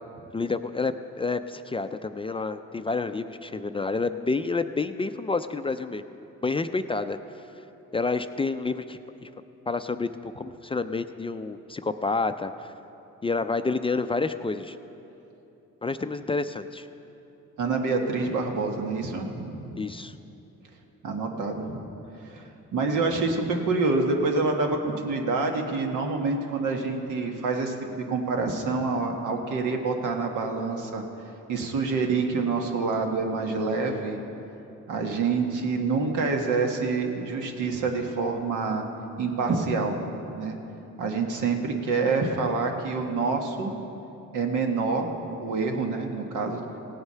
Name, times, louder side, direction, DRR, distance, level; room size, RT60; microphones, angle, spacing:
voice 1, 0.3-7.2 7.9-9.3 9.7-12.7 13.2-14.8 15.8-16.9 19.8-20.1, left 3 dB, 20° left, 9 dB, 0.4 m, -29 dB
voice 2, 17.6-19.8 21.0-21.8 22.2-31.0 31.5-34.2 34.9-38.9 39.2-40.0 40.4-40.6 41.0-43.7 44.3-45.1 45.4-46.6, right 4 dB, 85° right, 3 dB, 1.5 m, -27 dB
17.5 x 8.0 x 5.6 m, 2.9 s
cardioid pair, 90°, 30 cm